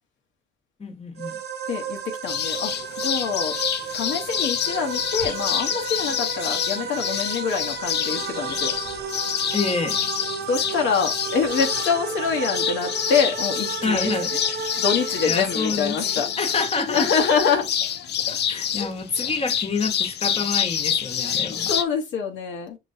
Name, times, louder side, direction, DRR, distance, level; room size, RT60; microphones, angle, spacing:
voice 1, 0.8-1.4 9.5-10.0 13.8-14.3 15.3-16.0 16.4-17.1 18.3-21.7, left 4 dB, 30° left, 1.2 m, -27 dB
sound 1, 1.2-16.6, right 6 dB, 55° right, 0.8 m, -33 dB
voice 2, 1.7-3.6 3.9-8.7 10.5-14.1 14.8-16.3 16.9-17.7 18.8-18.9 21.7-22.8, left 6 dB, 75° left, 1.0 m, -25 dB
sound 2, 2.3-21.8, left 9 dB, 60° left, 0.5 m, -27 dB
5.6 x 2.9 x 2.7 m
cardioid pair, 90°, 20 cm